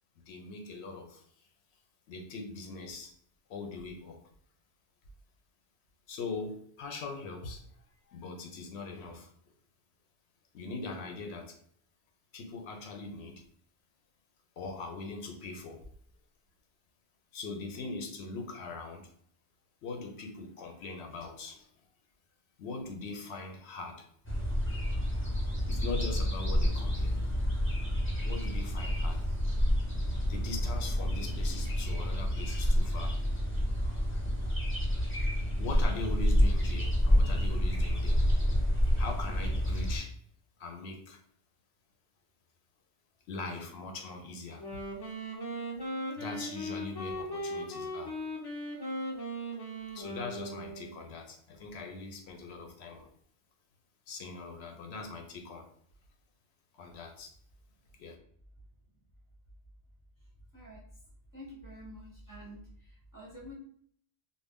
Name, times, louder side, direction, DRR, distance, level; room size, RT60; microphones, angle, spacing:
voice 1, 0.3-1.2 2.1-3.1 3.5-4.2 6.1-7.6 8.1-9.3 10.5-11.6 12.3-13.4 14.6-15.8 17.3-19.1 19.8-21.7 22.6-24.1 25.7-27.2 28.2-29.2 30.3-33.2 35.6-38.2 39.0-40.1 40.6-41.2 43.3-44.6 46.2-48.2 49.9-53.1 54.1-55.7 56.7-57.3 58.0-58.2, left 3 dB, 75° left, 3 dB, 0.8 m, -41 dB
sound 1, 24.2-40.0, equal, 10° left, 0.8 m, -28 dB
Wind instrument woodwind instrument, 44.5-51.0, equal, 40° left, 0.3 m, -38 dB
voice 2, 60.5-60.8 61.3-63.5, equal, 20° right, -4 dB, 0.6 m, -48 dB
2.5 x 2.1 x 3.4 m, 0.62 s
omnidirectional pair, 1.2 m